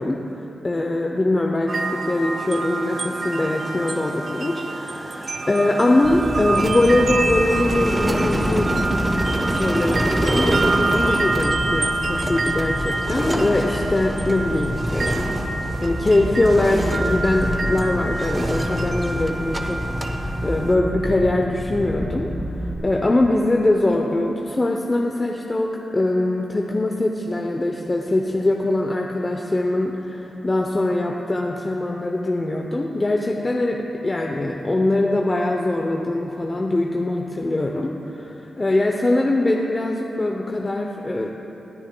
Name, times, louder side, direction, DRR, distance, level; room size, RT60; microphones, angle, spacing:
voice 1, 0.0-8.7 9.5-15.3 15.8-41.3, left 2 dB, 30° left, 1 dB, 0.6 m, -22 dB
sound 1, 1.7-20.8, right 3 dB, 50° right, 0.6 m, -27 dB
sound 2, 6.0-22.8, equal, 5° left, 2.3 m, -29 dB
sound 3, 6.5-16.2 16.5-17.9 18.2-19.6 19.9-20.1, right 1 dB, 20° right, 0.9 m, -27 dB
20.5 x 9.9 x 2.2 m, 3.0 s
cardioid pair, 75°, 0 cm